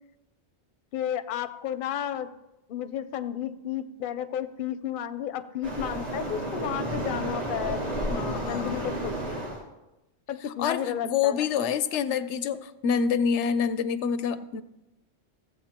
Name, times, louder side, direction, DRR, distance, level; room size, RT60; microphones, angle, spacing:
voice 1, 0.9-2.3 2.7-7.8 8.4-9.4 10.3-11.5, left 10 dB, 60° left, 11 dB, 0.7 m, -32 dB
Waves surf, 5.6-9.6, right 1 dB, 75° right, 2.2 m, -32 dB
voice 2, 8.1-8.9 10.6-14.6, left 7 dB, 85° left, 13 dB, 0.9 m, -27 dB
16.0 x 7.7 x 2.9 m, 0.98 s
omnidirectional pair, 1.2 m